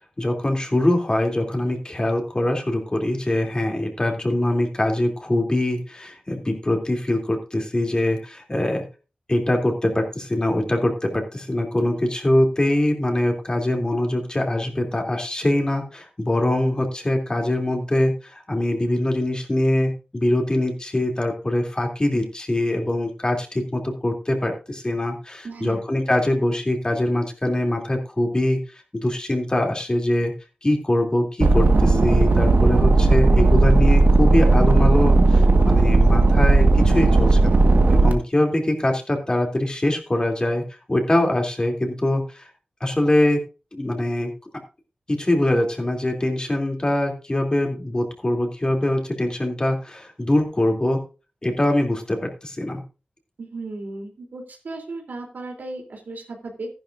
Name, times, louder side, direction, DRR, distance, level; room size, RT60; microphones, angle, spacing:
voice 1, 0.2-8.8 9.3-28.6 28.9-30.3 30.6-40.6 40.9-42.5 42.8-43.4 43.7-44.3 45.1-51.0 51.4-52.8, left 1 dB, 25° left, 2 dB, 2.9 m, -23 dB
voice 2, 25.4-25.8 53.4-56.7, right 2 dB, 90° right, 2 dB, 3.2 m, -35 dB
sound 1, 31.4-38.1, right 3 dB, 70° right, 1.5 m, -15 dB
14.5 x 11.0 x 2.6 m, 0.32 s
wide cardioid pair, 90°, 3 cm